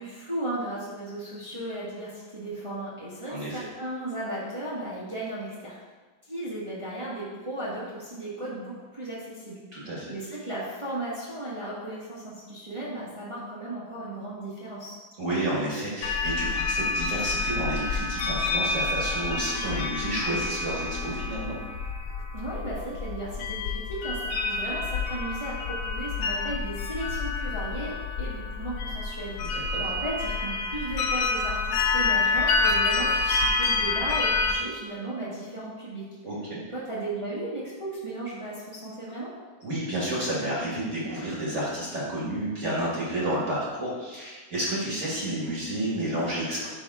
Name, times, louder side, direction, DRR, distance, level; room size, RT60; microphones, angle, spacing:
voice 1, 0.0-5.8 6.2-14.9 22.3-36.0 36.7-39.3, right 1 dB, 20° right, -8 dB, 1.4 m, -35 dB
voice 2, 3.3-3.6 9.7-10.1 15.2-21.5 29.4-29.8 36.2-36.6 39.6-46.7, right 1 dB, 50° right, -6 dB, 2.0 m, -30 dB
sound 1, 16.0-34.5, left 3 dB, 80° left, 1.2 m, -28 dB
10.5 x 3.5 x 3.6 m, 1.3 s
omnidirectional pair, 1.7 m